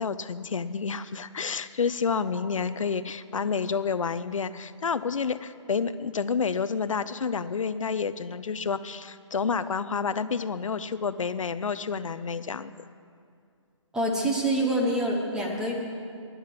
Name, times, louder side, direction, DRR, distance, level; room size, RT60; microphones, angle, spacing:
voice 1, 0.0-12.7, left 5 dB, 85° left, 13 dB, 0.6 m, -29 dB
voice 2, 13.9-15.7, right 1 dB, 5° right, -1 dB, 1.0 m, -26 dB
11.5 x 10.5 x 7.6 m, 2.4 s
hypercardioid pair, 160°, 16 cm